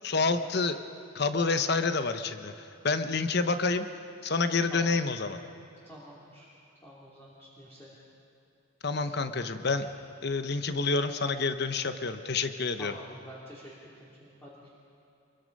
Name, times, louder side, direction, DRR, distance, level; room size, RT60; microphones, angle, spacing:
voice 1, 0.0-0.8 1.1-3.9 4.2-5.4 8.8-9.9 10.2-13.0, left 4 dB, 50° left, 9 dB, 0.9 m, -28 dB
voice 2, 5.8-6.5 6.8-8.0 9.8-9.9 12.8-14.7, equal, 10° left, -6 dB, 2.8 m, -48 dB
26.0 x 22.5 x 5.4 m, 2.7 s
head